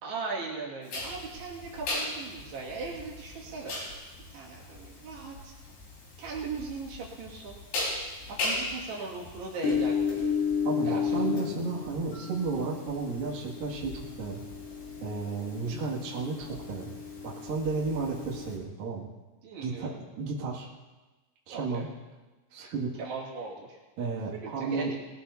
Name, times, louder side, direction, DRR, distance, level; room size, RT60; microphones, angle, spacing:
voice 1, 0.0-3.8 4.3-5.5 6.2-7.6 8.3-10.3 10.8-11.4 19.4-19.9 21.5-21.9 23.0-23.8 24.3-24.9, right 4 dB, 85° right, -4 dB, 4.4 m, -38 dB
sound 1, 0.9-18.5, left 5 dB, 85° left, 6.5 m, -34 dB
voice 2, 10.7-14.4 15.0-16.9 17.2-19.1 19.6-20.7 21.5-21.9 22.5-23.0 24.0-24.9, right 4 dB, 60° right, -5 dB, 3.9 m, -33 dB
21.0 x 17.5 x 2.8 m, 1.2 s
omnidirectional pair, 4.6 m